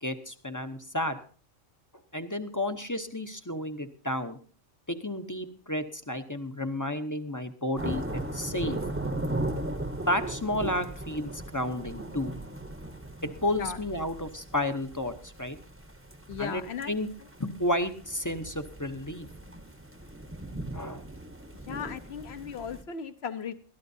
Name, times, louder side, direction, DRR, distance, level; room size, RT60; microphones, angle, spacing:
voice 1, 0.0-1.2 2.1-4.4 4.9-8.8 10.1-12.3 13.2-15.6 16.4-17.1 17.4-19.3 20.7-21.0, left 1 dB, 20° left, 8 dB, 0.7 m, -32 dB
sound 1, 7.8-22.8, right 1 dB, 10° right, 0.9 m, -38 dB
voice 2, 16.3-16.9 21.7-23.5, left 7 dB, 60° left, 11 dB, 1.2 m, -36 dB
21.5 x 13.0 x 2.7 m, 0.42 s
omnidirectional pair, 1.3 m